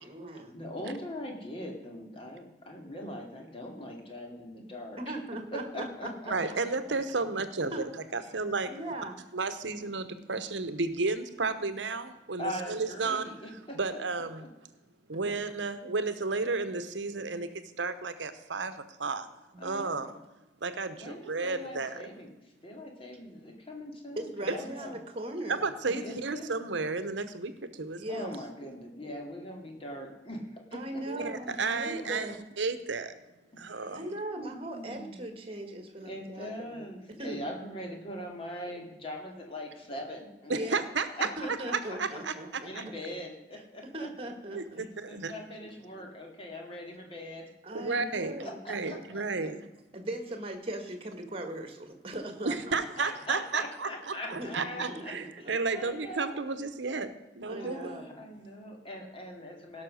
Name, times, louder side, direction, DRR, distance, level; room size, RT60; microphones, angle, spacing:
voice 1, 0.0-0.6 5.0-6.1 6.5-6.6 7.7-7.9 8.7-9.2 15.3-15.4 19.5-20.0 24.2-26.0 28.0-28.3 30.7-32.4 33.9-36.8 37.2-37.4 40.5-40.8 41.4-42.9 43.8-44.8 47.6-48.6 49.5-49.6 49.9-52.8 54.4-55.3 57.5-58.2, right 1 dB, 30° right, 6 dB, 1.6 m, -39 dB
voice 2, 0.5-5.0 5.5-6.6 8.3-8.4 12.4-13.8 14.4-14.5 19.6-20.1 20.9-24.9 26.0-26.5 28.1-31.2 32.0-32.4 33.5-35.2 36.0-40.8 41.2-41.5 41.9-42.0 42.6-44.1 45.1-47.8 48.4-49.5 52.7-55.1 55.4-56.4 57.6-59.8, left 1 dB, 30° left, 1 dB, 2.3 m, -42 dB
voice 3, 6.3-8.7 9.3-13.4 13.8-14.4 15.1-19.3 19.6-20.1 20.6-22.0 25.5-28.1 31.1-33.1 33.6-34.0 40.5-41.1 41.7-42.3 42.7-42.8 44.5-45.3 47.7-49.6 52.4-57.1 57.4-57.9, right 4 dB, 80° right, 11 dB, 0.9 m, -32 dB
17.0 x 6.0 x 6.4 m, 1.0 s
head